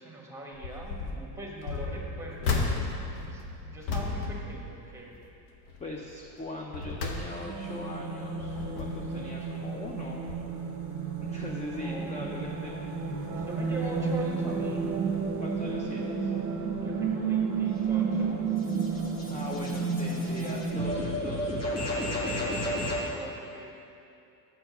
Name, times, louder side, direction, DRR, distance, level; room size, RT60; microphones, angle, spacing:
voice 1, 0.0-2.8 3.3-3.4 3.7-5.2 11.7-12.1 12.6-12.7 13.3-14.9 16.8-18.4 23.1-23.8, right 1 dB, 5° right, -2 dB, 1.4 m, -42 dB
sound 1, 0.5-1.2 1.6-5.3 5.7-6.0 6.5-7.7 8.2-9.2 9.9-10.0 10.3-10.4, left 3 dB, 75° left, 1.1 m, -34 dB
voice 2, 5.8-10.2 11.2-12.7 15.4-16.3 19.3-22.6, left 2 dB, 15° left, -1 dB, 0.5 m, -40 dB
sound 2, 7.3-21.0, right 5 dB, 25° right, 1.0 m, -31 dB
sound 3, 17.7-23.1, left 1 dB, 35° left, 1.6 m, -34 dB
6.4 x 4.4 x 6.6 m, 2.6 s
supercardioid pair, 100°, 46 cm